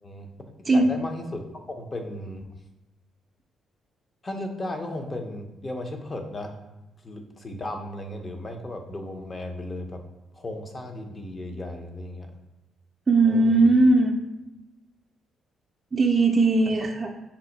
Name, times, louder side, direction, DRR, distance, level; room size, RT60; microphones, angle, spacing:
voice 1, 0.0-2.5 4.2-6.6 7.0-10.0 10.3-12.3 13.2-13.7 16.8-16.9, left 1 dB, 30° left, 4 dB, 0.6 m, -35 dB
voice 2, 13.1-14.2 15.9-17.1, right 2 dB, 25° right, 0 dB, 0.4 m, -19 dB
5.4 x 2.1 x 3.9 m, 0.98 s
cardioid pair, 90°, 0 cm